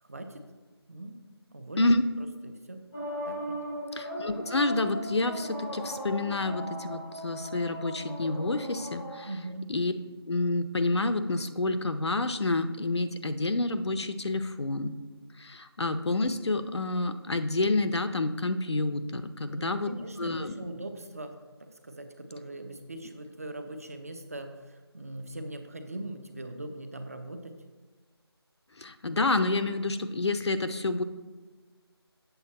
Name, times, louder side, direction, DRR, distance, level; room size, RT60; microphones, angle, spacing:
voice 1, 0.0-0.4 0.9-1.2 1.5-1.9 2.2-2.8 3.3-3.6 9.2-9.7 19.5-27.5, right 1 dB, 35° right, 7 dB, 0.7 m, -41 dB
sound 1, 2.9-9.2, equal, ahead, 0.7 m, -38 dB
voice 2, 3.9-9.3 9.7-9.9 10.3-14.9 15.4-19.9 20.2-20.5 28.8-31.0, left 2 dB, 85° left, 9 dB, 0.7 m, -28 dB
8.1 x 6.8 x 4.2 m, 1.4 s
figure-of-eight pair, 175°, 14 cm